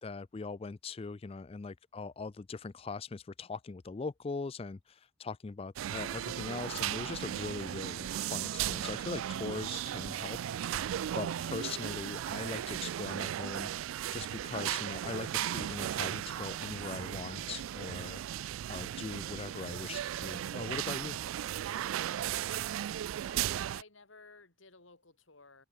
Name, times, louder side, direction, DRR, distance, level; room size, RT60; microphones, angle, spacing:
voice 1, 0.0-10.8 11.1-18.2 18.7-21.2, left 4 dB, 30° left, 0.4 m, -41 dB
sound 1, 5.8-23.8, right 11 dB, 85° right, 0.3 m, -36 dB
sound 2, 7.0-12.4, right 3 dB, 60° right, 2.2 m, -52 dB
voice 2, 23.2-25.7, left 3 dB, 75° left, 3.5 m, -56 dB
head